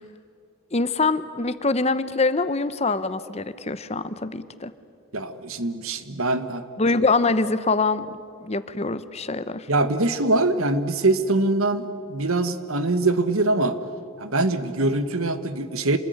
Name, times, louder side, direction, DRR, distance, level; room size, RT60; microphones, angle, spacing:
voice 1, 0.7-4.7 6.8-8.1 8.4-9.7, left 3 dB, 30° left, 13 dB, 0.8 m, -24 dB
voice 2, 5.1-6.6 9.7-13.8 14.2-16.0, right 2 dB, 75° right, 11 dB, 1.5 m, -23 dB
27.5 x 20.5 x 9.4 m, 2.4 s
head